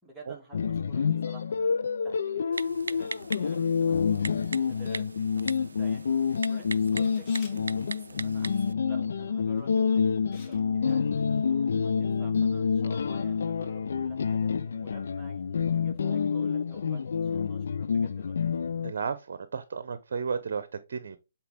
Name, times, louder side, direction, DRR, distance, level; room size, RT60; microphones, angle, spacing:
voice 1, 0.0-4.3 4.5-18.4, right 2 dB, 5° right, 2.4 m, -52 dB
sound 1, 0.5-18.9, left 6 dB, 70° left, 0.5 m, -28 dB
Typing, 2.5-8.7, right 4 dB, 85° right, 0.4 m, -40 dB
Camera, 7.0-7.6 9.6-9.8 10.3-10.6 10.9-11.0, left 2 dB, 20° left, 2.6 m, -49 dB
voice 2, 18.8-21.2, right 5 dB, 60° right, 0.8 m, -33 dB
8.3 x 4.4 x 3.5 m
hypercardioid pair, 145°, 0 cm